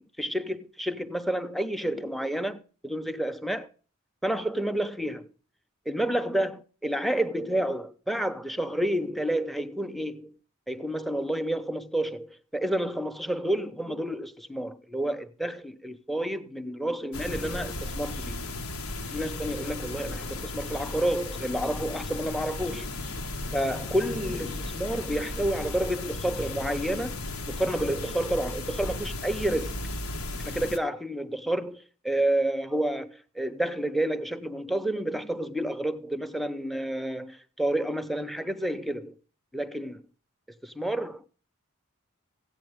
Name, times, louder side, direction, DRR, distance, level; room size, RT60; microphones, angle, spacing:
voice 1, 0.0-3.7 4.2-5.3 5.9-10.3 10.7-18.4 19.1-22.9 23.5-27.2 27.5-29.8 30.4-39.1 39.5-40.0 40.6-41.3, right 1 dB, ahead, 0.7 m, -30 dB
sound 1, 17.1-30.8, left 2 dB, 80° left, 1.3 m, -35 dB
14.5 x 9.1 x 3.5 m
head